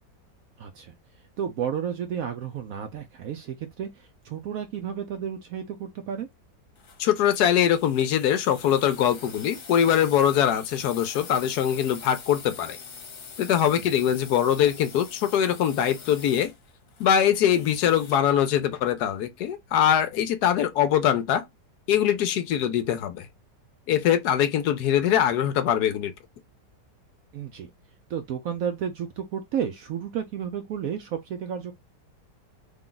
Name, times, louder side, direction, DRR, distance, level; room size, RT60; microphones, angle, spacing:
voice 1, 0.6-0.9 1.4-6.3 13.7-13.9 27.3-27.7 28.1-31.7, right 8 dB, 70° right, 0.8 m, -32 dB
sound 1, 6.8-18.3, left 5 dB, 55° left, 1.2 m, -44 dB
voice 2, 7.0-12.8 13.4-16.5 17.0-21.4 21.9-23.3 23.9-26.1, left 9 dB, 70° left, 1.1 m, -22 dB
3.5 x 2.3 x 3.8 m
omnidirectional pair, 1.9 m